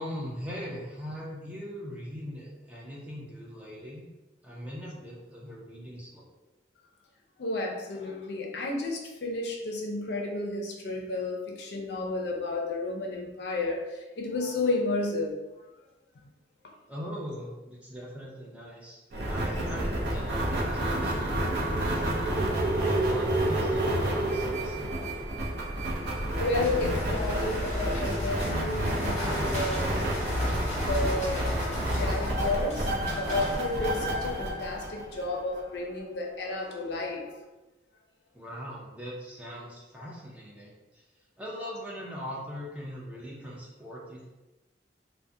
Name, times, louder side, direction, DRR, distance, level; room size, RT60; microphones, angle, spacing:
voice 1, 0.0-4.1 4.4-6.3 16.9-19.0 19.3-25.2 38.3-41.0 41.4-44.2, equal, 10° right, -5 dB, 0.4 m, -41 dB
voice 2, 7.4-13.9 14.2-15.3 26.4-30.1 30.9-31.5 32.0-37.3, left 2 dB, 70° left, 0 dB, 0.4 m, -32 dB
sound 1, 19.1-35.6, right 1 dB, 65° right, 0.5 m, -29 dB
sound 2, 25.8-34.5, left 1 dB, 40° left, 0.9 m, -38 dB
2.3 x 2.1 x 2.6 m, 1.1 s
head